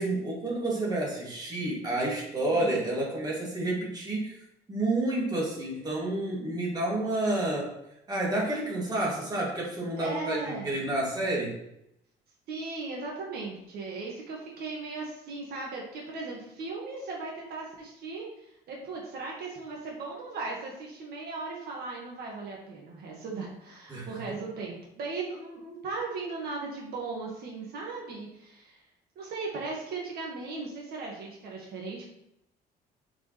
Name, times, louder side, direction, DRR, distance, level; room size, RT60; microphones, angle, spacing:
voice 1, 0.0-4.3 4.7-7.7 8.1-11.6 23.9-24.1, right 2 dB, 25° right, -4 dB, 2.8 m, -29 dB
voice 2, 2.5-2.8 10.0-10.7 12.5-18.3 18.7-28.8 29.2-32.1, right 3 dB, 70° right, -2 dB, 1.9 m, -37 dB
7.4 x 5.2 x 3.4 m, 0.81 s
cardioid pair, 110°, 17 cm